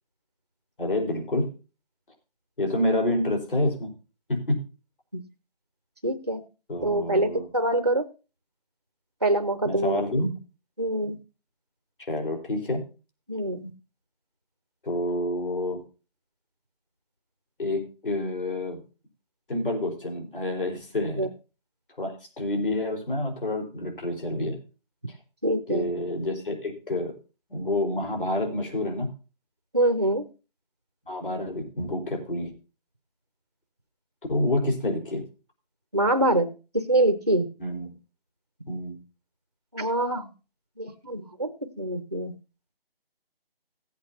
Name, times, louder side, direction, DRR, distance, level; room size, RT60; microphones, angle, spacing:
voice 1, 0.8-1.5 2.6-3.9 4.3-4.6 6.7-7.5 9.6-10.3 12.1-12.8 14.8-15.8 17.6-18.8 19.5-21.3 22.0-24.6 25.7-27.1 27.5-29.1 31.1-32.5 34.3-35.2 37.6-37.9 38.7-39.0, left 1 dB, 60° left, 2 dB, 4.5 m, -28 dB
voice 2, 6.0-6.4 6.8-8.1 9.2-10.0 10.8-11.2 13.3-13.7 21.2-21.3 25.4-25.9 29.7-30.2 35.9-36.5 36.7-37.5 39.7-40.3 40.8-42.3, right 1 dB, 30° right, 9 dB, 0.5 m, -25 dB
17.5 x 8.4 x 2.8 m, 0.32 s
figure-of-eight pair, 170°, 30 cm